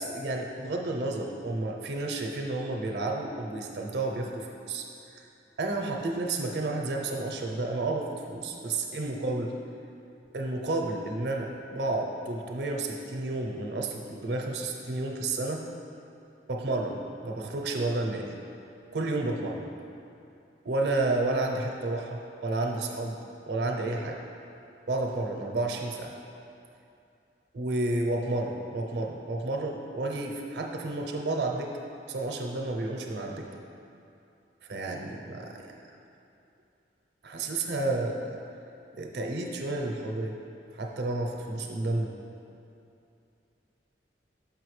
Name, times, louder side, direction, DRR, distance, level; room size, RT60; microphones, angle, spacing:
voice 1, 0.0-4.9 5.1-5.2 5.6-9.5 10.3-15.7 16.5-18.3 18.9-19.7 20.6-23.2 23.5-24.2 24.9-26.1 27.5-31.7 32.1-33.5 34.7-35.7 37.2-38.4 38.9-40.4 40.7-42.1, right 2 dB, 70° right, 1 dB, 0.6 m, -31 dB
6.0 x 5.3 x 3.2 m, 2.6 s
head